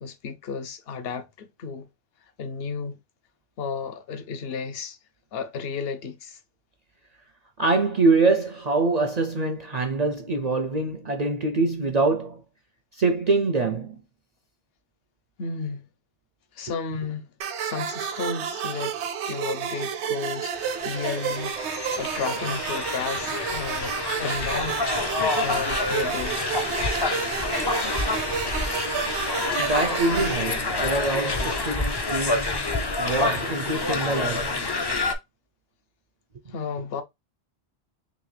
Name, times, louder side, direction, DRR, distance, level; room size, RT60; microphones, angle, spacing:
voice 1, 0.0-1.9 2.4-3.0 3.6-5.0 5.3-6.4 15.4-15.8 16.5-17.3 17.6-19.0 19.3-24.8 25.2-26.5 36.5-37.0, left 5 dB, 60° left, 0.9 m, -33 dB
voice 2, 7.6-12.4 13.0-14.0 28.4-28.6 29.6-32.7 33.0-34.7, right 3 dB, 50° right, 0.5 m, -24 dB
sound 1, 17.4-30.4, right 8 dB, 75° right, 0.9 m, -31 dB
sound 2, 20.5-35.1, left 3 dB, 35° left, 0.4 m, -28 dB
3.8 x 2.9 x 3.2 m
omnidirectional pair, 1.2 m